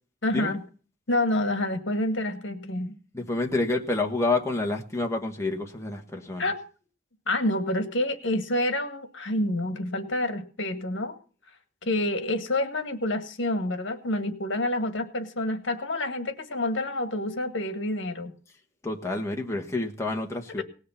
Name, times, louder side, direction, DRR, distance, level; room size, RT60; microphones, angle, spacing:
voice 1, 0.2-0.6 1.1-3.0 6.4-6.6 7.3-11.2 11.8-18.3 20.6-20.7, left 1 dB, 70° left, 1.9 m, -28 dB
voice 2, 3.1-6.4 18.8-20.6, left 2 dB, 15° left, 1.5 m, -28 dB
18.5 x 6.6 x 7.2 m
head